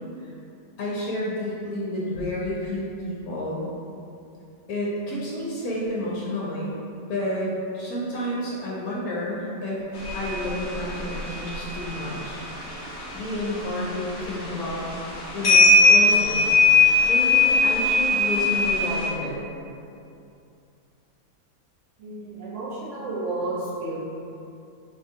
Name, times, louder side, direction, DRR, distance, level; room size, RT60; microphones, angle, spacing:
voice 1, 0.8-3.7 4.7-6.8 7.1-9.9 10.1-12.4 13.1-14.9 15.3-16.6 17.1-19.4, left 1 dB, 80° left, -6 dB, 1.1 m, -30 dB
sound 1, 9.9-19.1, left 3 dB, 50° left, 0.6 m, -21 dB
voice 2, 22.0-24.0, right 2 dB, 55° right, -10 dB, 1.3 m, -32 dB
4.0 x 2.2 x 2.7 m, 2.6 s
omnidirectional pair, 1.5 m